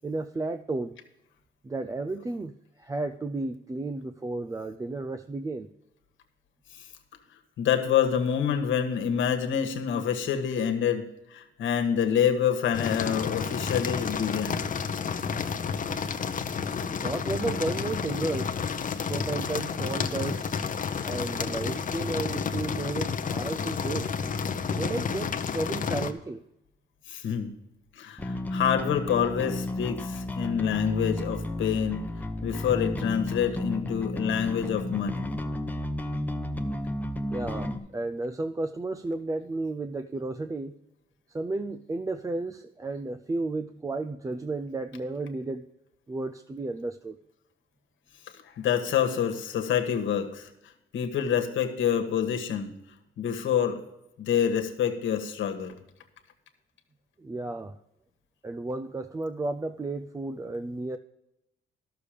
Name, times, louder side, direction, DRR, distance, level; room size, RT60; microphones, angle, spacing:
voice 1, 0.0-1.0 1.6-5.7 15.9-16.0 17.0-18.5 19.1-20.5 21.0-24.1 24.8-26.4 37.3-40.7 41.3-45.6 46.1-47.2 57.2-57.8 58.4-61.0, right 2 dB, 15° right, 8 dB, 0.4 m, -33 dB
voice 2, 7.6-14.6 27.1-27.5 28.0-32.1 32.4-35.3 48.6-50.5 50.9-52.7 53.2-53.8 54.2-55.7, left 8 dB, 75° left, 5 dB, 1.5 m, -27 dB
sound 1, 12.7-26.1, left 6 dB, 40° left, 0.8 m, -30 dB
Bass guitar, 28.2-37.8, left 1 dB, 10° left, 0.9 m, -32 dB
12.0 x 6.8 x 5.0 m, 0.89 s
cardioid pair, 90°, 20 cm